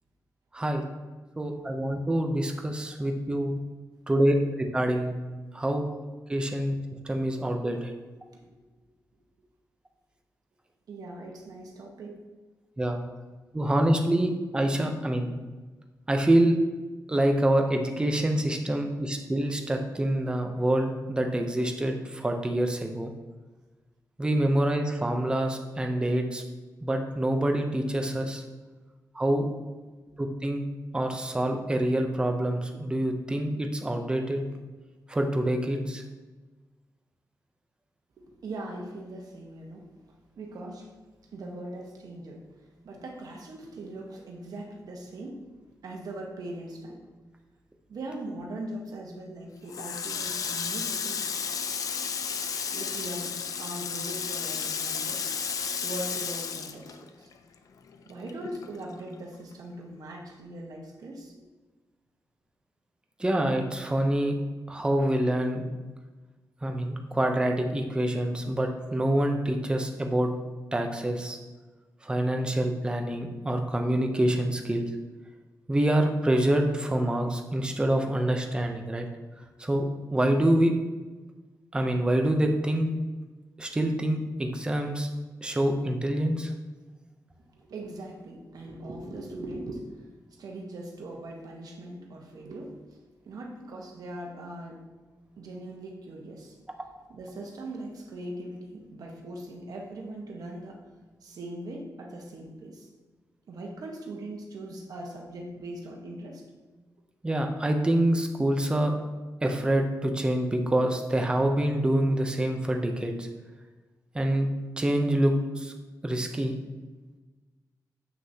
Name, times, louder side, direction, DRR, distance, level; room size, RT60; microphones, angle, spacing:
voice 1, 1.4-3.5 4.1-4.4 4.7-5.2 5.5-5.8 6.3-6.7 7.0-7.9 12.8-13.0 13.5-15.3 16.1-16.5 17.1-23.1 24.2-26.4 26.8-28.4 29.1-29.5 30.2-30.6 30.9-34.4 35.1-36.0 63.2-64.3 64.7-65.7 66.6-70.3 70.7-71.4 72.0-74.9 75.7-79.1 79.6-79.9 80.1-80.7 81.7-82.9 83.6-85.1 85.4-86.5 107.2-109.0 109.4-113.3 114.1-114.5 114.8-115.7 116.0-116.5, right 1 dB, 15° right, 3 dB, 0.6 m, -26 dB
voice 2, 10.9-12.2 38.3-39.8 40.4-40.9 41.3-42.4 42.8-45.4 45.8-47.0 47.9-51.3 52.7-55.4 55.8-57.3 58.0-61.4 87.6-89.9 90.4-92.8 93.2-94.8 95.4-96.5 97.1-100.8 101.2-102.9 103.5-106.4, right 1 dB, 70° right, 0 dB, 1.2 m, -40 dB
Water tap faucet, 49.7-57.6 57.9-59.2, left 6 dB, 60° left, 0.5 m, -33 dB
7.7 x 6.1 x 2.8 m, 1.3 s
wide cardioid pair, 180°, 7 cm